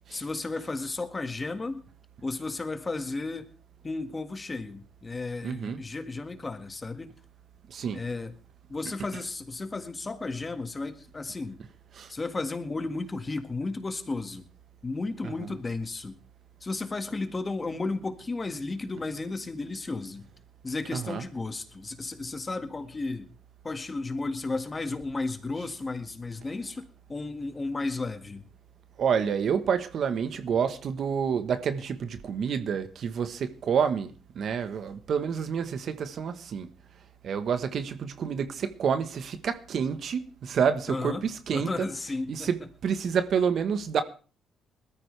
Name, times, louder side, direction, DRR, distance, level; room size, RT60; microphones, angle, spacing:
voice 1, 0.1-1.8 2.2-3.5 3.8-7.1 7.9-8.3 8.7-11.6 12.1-14.5 14.8-16.2 16.6-20.3 20.6-23.3 23.6-28.4 40.9-42.5, left 3 dB, 25° left, 1.9 m, -33 dB
voice 2, 5.4-5.8 7.7-8.0 11.9-12.1 15.4-15.5 20.9-21.2 29.0-36.7 37.2-41.9 42.3-44.0, right 7 dB, 60° right, 1.2 m, -28 dB
20.5 x 13.5 x 3.4 m
cardioid pair, 90°, 0 cm